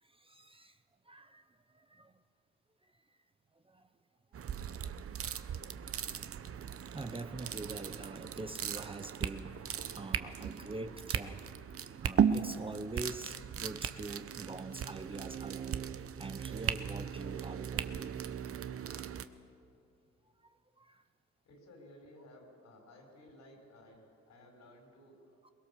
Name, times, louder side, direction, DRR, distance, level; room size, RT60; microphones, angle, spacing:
voice 1, 0.0-0.8 1.0-2.1 3.6-3.9 5.2-5.5 5.9-6.3 6.9-11.5 12.0-18.2 20.4-21.0 25.4-25.5, right 2 dB, 20° right, 9 dB, 0.9 m, -45 dB
sound 1, 4.3-19.3, right 8 dB, 50° right, 0.9 m, -37 dB
voice 2, 21.4-25.4, left 1 dB, 65° left, 3 dB, 5.0 m, -57 dB
22.5 x 20.5 x 6.9 m, 2.7 s
cardioid pair, 80°, 29 cm